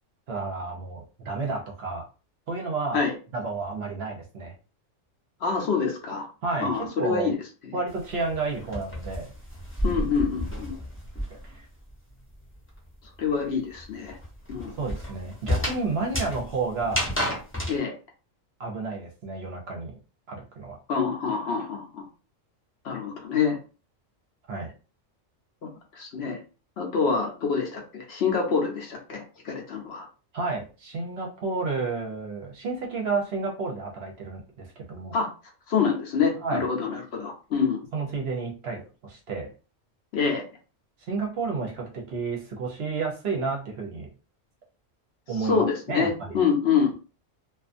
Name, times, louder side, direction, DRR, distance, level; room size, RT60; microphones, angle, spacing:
voice 1, 0.3-2.1 2.5-3.0 3.3-4.5 6.4-7.3 7.7-9.3 11.3-11.7 14.8-17.0 18.6-20.0 20.3-20.8 24.5-24.7 30.3-35.1 36.4-36.6 37.9-39.5 41.1-44.1 45.3-46.4, right 4 dB, 60° right, 0 dB, 0.8 m, -31 dB
voice 2, 5.4-6.3 6.6-7.4 7.6-7.7 9.8-10.7 13.2-14.2 14.5-14.7 17.7-17.9 20.9-22.1 22.8-23.6 25.6-26.4 26.8-30.1 35.1-35.3 35.7-37.8 40.1-40.5 45.4-46.9, left 6 dB, 60° left, 1 dB, 0.8 m, -26 dB
sound 1, 7.9-11.6 11.9-17.8, equal, 10° left, 0.7 m, -31 dB
2.4 x 2.4 x 2.4 m, 0.35 s
omnidirectional pair, 1.3 m